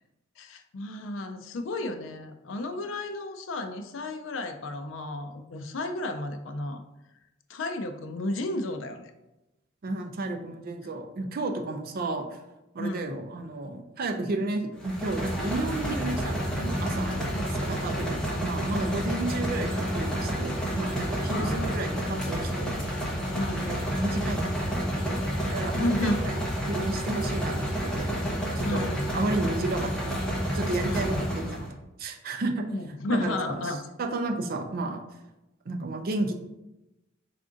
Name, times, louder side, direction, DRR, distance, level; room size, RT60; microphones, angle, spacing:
voice 1, 0.4-6.8 7.5-9.1 12.8-13.2 17.3-17.5 21.2-21.8 23.4-23.7 25.7-26.2 28.6-29.1 30.8-31.2 32.7-33.8, left 2 dB, 65° left, 7 dB, 0.4 m, -32 dB
voice 2, 9.8-12.4 12.7-17.2 17.4-22.7 23.5-25.9 26.7-28.1 28.6-28.9 29.1-30.3 30.5-31.7 32.0-32.7 33.1-35.0 35.7-36.3, right 2 dB, 50° right, 5 dB, 0.4 m, -32 dB
sound 1, 14.8-31.7, equal, 5° left, 0.7 m, -30 dB
3.6 x 2.5 x 3.7 m, 0.96 s
head